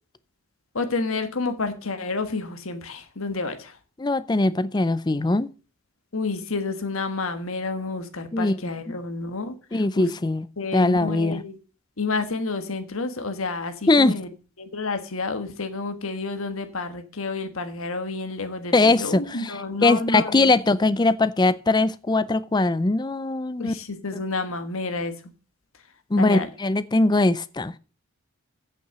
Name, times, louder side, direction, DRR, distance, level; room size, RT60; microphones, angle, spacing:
voice 1, 0.7-3.8 6.1-10.1 10.6-11.6 12.0-14.3 14.6-20.5 23.6-25.1 26.2-26.5, left 3 dB, 75° left, 1.4 m, -30 dB
voice 2, 4.0-5.5 8.3-8.6 8.9-9.0 9.7-10.5 10.7-11.4 13.9-14.2 18.7-23.7 26.1-27.7, left 2 dB, 20° left, 0.4 m, -21 dB
8.5 x 6.8 x 6.6 m
head